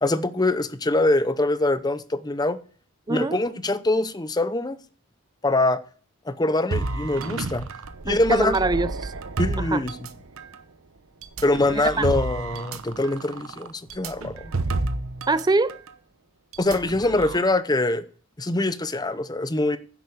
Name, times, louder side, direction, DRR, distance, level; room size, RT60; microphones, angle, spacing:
voice 1, 0.0-2.6 3.1-4.8 5.4-5.8 6.3-7.7 8.0-8.6 9.4-10.0 11.4-14.5 16.6-18.0 18.4-19.8, left 2 dB, 20° left, 0.7 m, -23 dB
voice 2, 3.1-3.4 8.1-9.1 9.6-9.8 11.7-12.0 15.3-15.8, right 3 dB, 20° right, 0.5 m, -24 dB
sound 1, 6.7-10.6 11.2-15.4 15.7-15.9 16.5-17.4, right 3 dB, 70° right, 0.9 m, -31 dB
10.5 x 7.9 x 6.8 m
head